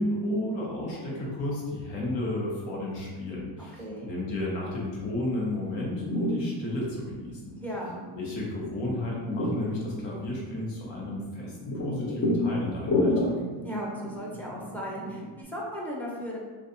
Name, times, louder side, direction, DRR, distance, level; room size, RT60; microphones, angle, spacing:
voice 1, 0.0-7.6 8.1-13.3, left 1 dB, 80° left, -4 dB, 1.1 m, -32 dB
voice 2, 3.8-4.1 7.6-8.0 13.6-16.4, equal, 5° left, -4 dB, 0.6 m, -36 dB
sound 1, 5.6-15.4, left 1 dB, 35° left, 0.7 m, -32 dB
3.9 x 2.4 x 2.7 m, 1.4 s
cardioid pair, 140°, 45 cm